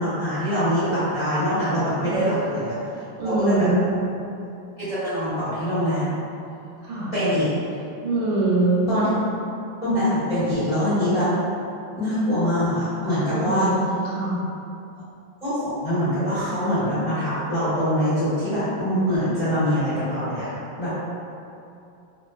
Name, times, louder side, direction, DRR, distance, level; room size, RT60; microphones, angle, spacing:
voice 1, 0.0-2.7 3.2-3.7 4.8-6.1 7.1-7.5 8.9-9.1 9.8-11.3 11.9-13.7 15.4-20.5 20.8-20.9, equal, 25° left, -16 dB, 1.0 m, -23 dB
voice 2, 3.2-4.0 6.8-7.1 8.0-9.0 13.3-14.4, right 2 dB, 80° right, -7 dB, 1.5 m, -23 dB
3.1 x 2.6 x 2.2 m, 2.6 s
omnidirectional pair, 2.2 m